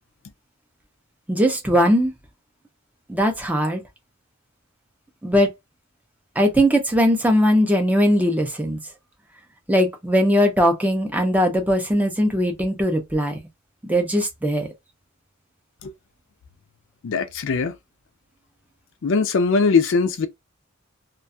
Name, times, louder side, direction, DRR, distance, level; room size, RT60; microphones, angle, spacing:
voice 1, 1.3-2.1 3.1-3.8 5.2-5.5 6.4-8.8 9.7-13.4 13.8-14.7, equal, 10° right, 0.5 m, -19 dB
voice 2, 17.0-17.7 19.0-20.3, left 4 dB, 60° left, 0.4 m, -20 dB
2.4 x 2.2 x 2.6 m
head